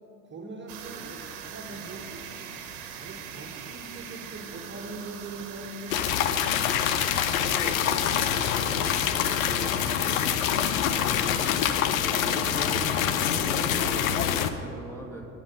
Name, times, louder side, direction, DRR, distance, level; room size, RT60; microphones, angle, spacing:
voice 1, 0.2-2.3 3.0-6.5 7.4-10.7, right 2 dB, 30° right, 0 dB, 1.4 m, -42 dB
sound 1, 0.7-11.6, right 7 dB, 65° right, 1.2 m, -42 dB
sound 2, 5.9-14.5, left 9 dB, 85° left, 0.6 m, -25 dB
voice 2, 11.6-15.3, right 1 dB, 5° left, 0 dB, 1.7 m, -40 dB
9.7 x 5.8 x 7.6 m, 2.8 s
hypercardioid pair, 80°, 39 cm